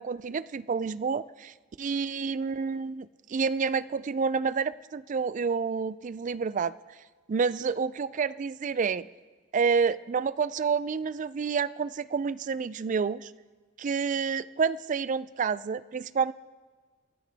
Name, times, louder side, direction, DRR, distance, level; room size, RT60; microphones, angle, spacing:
voice 1, 0.0-6.8 7.3-9.1 9.5-13.3 13.8-16.3, right 5 dB, 40° right, 17 dB, 0.4 m, -29 dB
26.0 x 10.5 x 3.4 m, 1.4 s
head